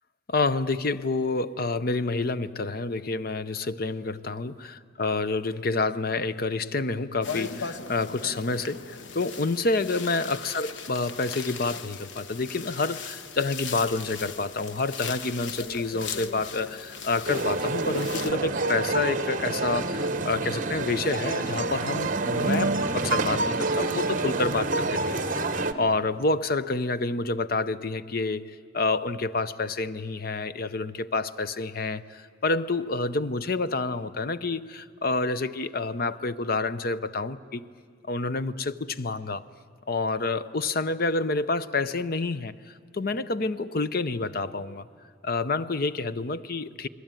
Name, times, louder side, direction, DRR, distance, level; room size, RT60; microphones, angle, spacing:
voice 1, 0.3-25.2 25.7-37.7 38.1-39.5 39.9-44.8 45.2-46.9, left 3 dB, 50° left, 0.7 m, -28 dB
sound 1, 7.2-18.3, left 5 dB, 75° left, 1.1 m, -38 dB
sound 2, 17.3-25.7, right 3 dB, 45° right, 1.2 m, -27 dB
29.5 x 21.0 x 9.1 m
head